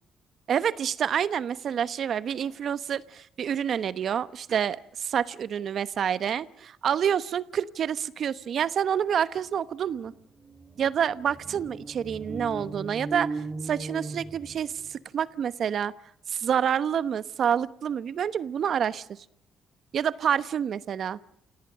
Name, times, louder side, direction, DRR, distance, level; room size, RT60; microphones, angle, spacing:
voice 1, 0.5-10.1 10.8-15.9 16.3-19.2 19.9-21.2, right 8 dB, 60° right, 16 dB, 1.0 m, -28 dB
sound 1, 9.5-9.6 9.9-15.0, right 3 dB, 20° right, 2.2 m, -38 dB
28.0 x 17.5 x 7.9 m, 0.75 s
cardioid pair, 90°, 0 cm